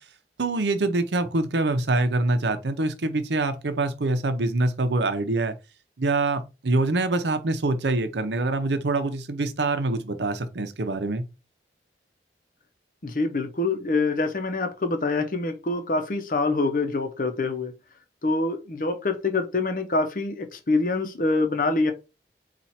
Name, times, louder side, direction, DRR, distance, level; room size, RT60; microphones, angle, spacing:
voice 1, 0.4-5.5 6.0-11.2, right 2 dB, 80° right, 0.7 m, -25 dB
voice 2, 13.0-17.7 18.2-21.9, left 3 dB, 50° left, 0.7 m, -25 dB
4.4 x 2.4 x 4.2 m
head